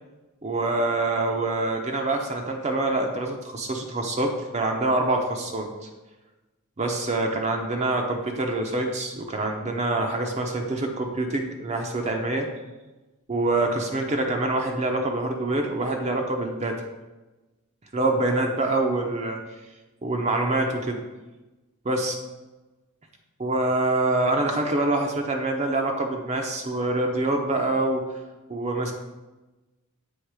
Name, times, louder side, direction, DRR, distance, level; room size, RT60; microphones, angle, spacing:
voice 1, 0.4-5.7 6.8-12.5 13.3-16.8 17.9-19.4 20.0-21.0 21.8-22.2 23.4-28.0 28.5-28.9, right 2 dB, 30° right, 2 dB, 0.6 m, -25 dB
8.0 x 3.6 x 4.8 m, 1.1 s
head